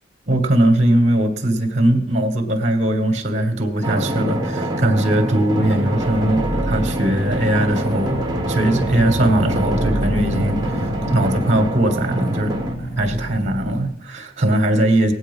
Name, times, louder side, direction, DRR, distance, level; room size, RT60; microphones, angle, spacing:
voice 1, 0.3-8.2 8.5-12.6 13.0-15.1, right 1 dB, 35° right, 5 dB, 1.6 m, -20 dB
Drum, 3.8-12.8, right 1 dB, 20° right, 1.2 m, -26 dB
sound 1, 5.5-13.8, right 1 dB, 70° left, 4.1 m, -27 dB
18.0 x 8.3 x 5.5 m, 0.71 s
head